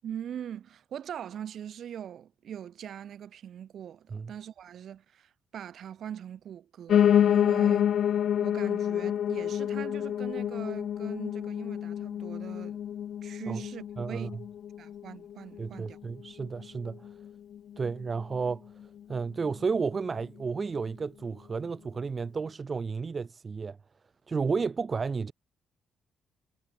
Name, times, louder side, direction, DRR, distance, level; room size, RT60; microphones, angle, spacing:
voice 1, 0.0-7.9 8.4-12.8 13.2-14.3 14.8-16.0, right 9 dB, 65° right, 6.0 m, -42 dB
Piano, 6.9-16.0 16.4-17.6 17.8-17.9 18.2-18.3 18.5-18.6 19.2-19.3, left 9 dB, 65° left, 1.2 m, -28 dB
voice 2, 14.0-14.3 15.6-17.1 17.8-18.7 19.1-23.8 24.3-25.3, right 5 dB, 35° right, 0.8 m, -32 dB
cardioid pair, 90°, 0 cm